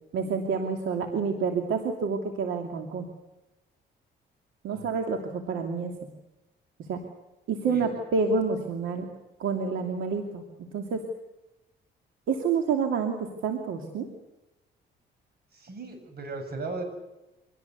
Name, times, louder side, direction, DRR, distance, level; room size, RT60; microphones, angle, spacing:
voice 1, 0.1-3.1 4.6-6.0 6.9-7.0 7.5-9.1 9.4-10.5 10.7-11.1 12.3-14.1, right 5 dB, 80° right, 4 dB, 2.7 m, -28 dB
voice 2, 15.5-16.8, right 3 dB, 55° right, 6 dB, 7.9 m, -37 dB
25.0 x 19.0 x 8.2 m, 0.98 s
cardioid pair, 90°, 20 cm